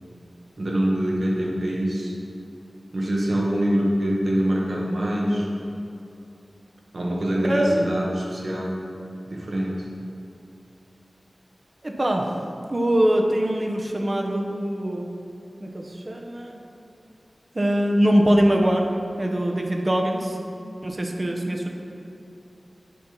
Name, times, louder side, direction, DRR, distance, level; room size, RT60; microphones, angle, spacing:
voice 1, 0.6-2.1 2.9-5.5 6.9-8.7 9.3-9.7, equal, 70° right, -3 dB, 1.4 m, -24 dB
voice 2, 7.4-8.0 11.8-12.3 12.7-15.1 15.6-16.6 17.5-18.9 19.2-20.4 20.8-21.7, equal, 40° right, 2 dB, 0.9 m, -22 dB
8.5 x 4.2 x 5.4 m, 2.7 s
wide cardioid pair, 55°, 0 cm